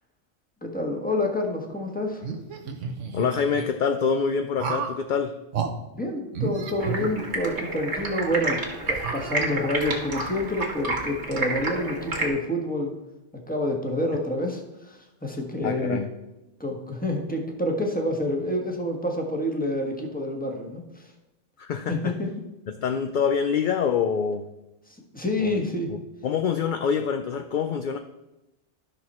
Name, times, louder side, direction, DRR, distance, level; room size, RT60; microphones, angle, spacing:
voice 1, 0.6-2.2 5.9-8.6 8.9-13.0 13.3-16.0 16.6-21.1 21.9-22.3 24.9-25.9, left 1 dB, 5° left, 1 dB, 1.4 m, -28 dB
sound 1, 2.2-3.7 4.6-5.0 5.5-5.7 6.3-7.6 8.1-8.2 8.9-9.8, right 6 dB, 90° right, 1.3 m, -32 dB
voice 2, 3.1-5.3 15.6-16.1 21.6-22.1 22.8-24.5 25.4-25.6 25.9-28.0, left 6 dB, 55° left, 8 dB, 0.6 m, -26 dB
Stream, 6.8-12.3, right 2 dB, 70° right, 2.0 m, -30 dB
11.5 x 6.1 x 4.3 m, 0.95 s
omnidirectional pair, 1.2 m